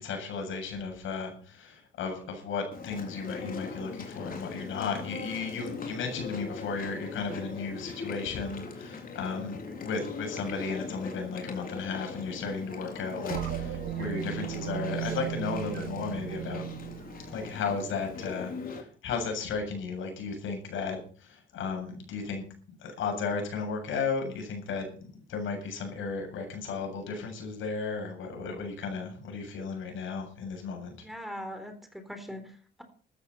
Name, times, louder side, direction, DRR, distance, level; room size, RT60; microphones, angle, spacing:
voice 1, 0.0-16.8 17.3-22.4 22.8-31.0, left 4 dB, 80° left, 3 dB, 7.7 m, -34 dB
Chewing mastication, 2.7-18.8, left 4 dB, 45° left, 4.4 m, -41 dB
sound 1, 13.3-18.0, right 14 dB, 75° right, 1.1 m, -36 dB
voice 2, 31.0-32.8, equal, ahead, 6 dB, 3.9 m, -41 dB
14.0 x 13.0 x 5.6 m, 0.42 s
cardioid pair, 90°, 20 cm